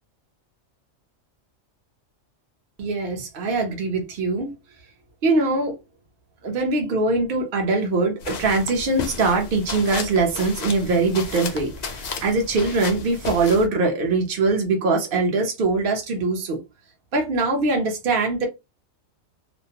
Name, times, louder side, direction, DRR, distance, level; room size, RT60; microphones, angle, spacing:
voice 1, 2.8-4.5 5.2-5.8 6.4-16.6 17.1-18.5, right 3 dB, 50° right, 0.8 m, -22 dB
sound 1, 8.2-13.7, left 4 dB, 75° left, 0.3 m, -33 dB
2.5 x 2.0 x 2.7 m
omnidirectional pair, 1.3 m